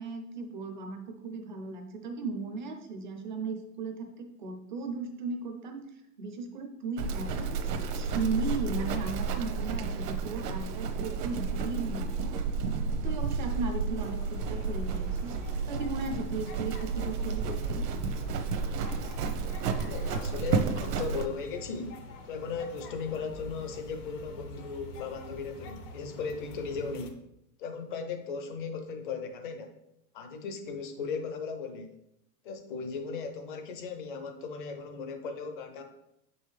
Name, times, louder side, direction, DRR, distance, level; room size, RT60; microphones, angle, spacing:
voice 1, 0.0-12.5 12.9-17.8, right 4 dB, 30° right, 5 dB, 0.4 m, -36 dB
Livestock farm animals working animals, 7.0-21.3, right 4 dB, 75° right, 0.9 m, -32 dB
sound 1, 14.0-27.1, left 2 dB, 70° left, 1.1 m, -47 dB
voice 2, 19.9-22.0 22.3-27.2 27.6-29.7 30.1-31.9 32.4-35.8, left 5 dB, 35° left, 6 dB, 0.6 m, -37 dB
6.9 x 5.4 x 3.2 m, 0.81 s
supercardioid pair, 175°, 49 cm